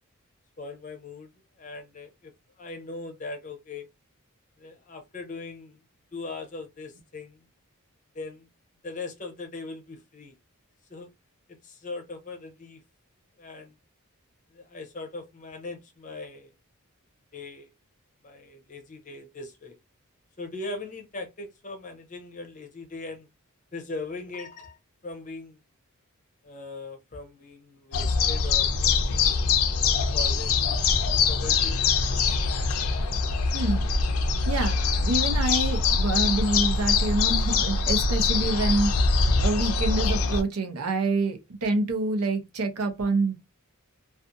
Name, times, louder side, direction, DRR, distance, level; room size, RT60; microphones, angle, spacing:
voice 1, 0.6-1.3 1.6-2.3 2.6-3.9 4.6-5.8 6.1-7.4 8.1-8.5 8.8-10.3 10.9-11.1 11.6-12.8 13.4-13.7 14.5-16.5 17.3-17.7 18.2-19.8 20.4-23.3 23.7-24.8 25.0-25.6 26.4-29.2 30.1-30.8 31.3-31.9, left 3 dB, 35° left, 0.6 m, -39 dB
sound 1, 27.9-40.4, left 4 dB, 75° left, 0.5 m, -23 dB
voice 2, 33.5-33.9 34.5-34.8 35.0-39.1 39.4-43.4, right 2 dB, 80° right, 0.7 m, -27 dB
2.5 x 2.4 x 2.5 m
head